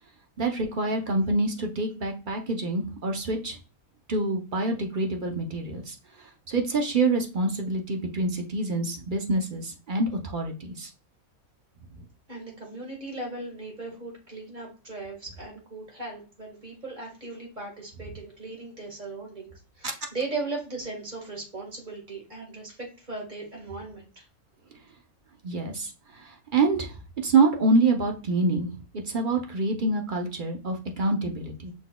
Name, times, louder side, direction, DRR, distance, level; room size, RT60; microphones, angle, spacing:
voice 1, 0.4-3.6 4.1-5.9 6.5-10.9 25.4-25.9 26.2-28.7 29.1-31.7, right 3 dB, 50° right, 2 dB, 0.6 m, -26 dB
voice 2, 12.3-24.3, right 3 dB, 30° right, 0 dB, 1.7 m, -38 dB
6.1 x 3.9 x 2.2 m, 0.34 s
omnidirectional pair, 1.5 m